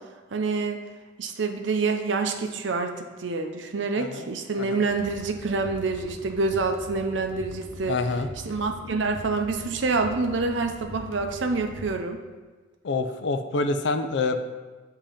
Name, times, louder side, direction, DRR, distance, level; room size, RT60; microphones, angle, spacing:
voice 1, 0.3-0.8 1.2-8.0 8.5-12.2, right 3 dB, 70° right, 5 dB, 0.6 m, -27 dB
voice 2, 4.0-4.3 4.6-4.8 7.9-8.3 12.8-14.4, left 3 dB, 65° left, 8 dB, 0.4 m, -27 dB
sound 1, 4.9-11.9, left 1 dB, 85° left, 0.9 m, -42 dB
7.5 x 2.9 x 5.0 m, 1.3 s
head